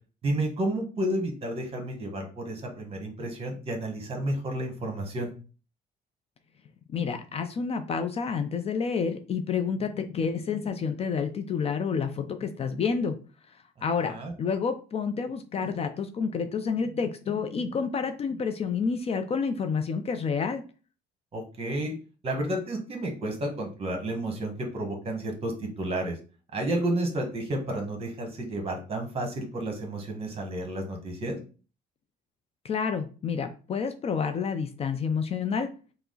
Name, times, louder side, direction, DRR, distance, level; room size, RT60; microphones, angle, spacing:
voice 1, 0.2-5.3 14.0-14.3 21.3-21.9 22.2-26.2 26.5-31.4, right 1 dB, 35° right, 3 dB, 1.3 m, -31 dB
voice 2, 6.9-13.2 13.5-20.6 32.6-35.7, left 5 dB, 35° left, 7 dB, 0.4 m, -29 dB
4.6 x 2.0 x 3.8 m, 0.36 s
cardioid pair, 110°, 17 cm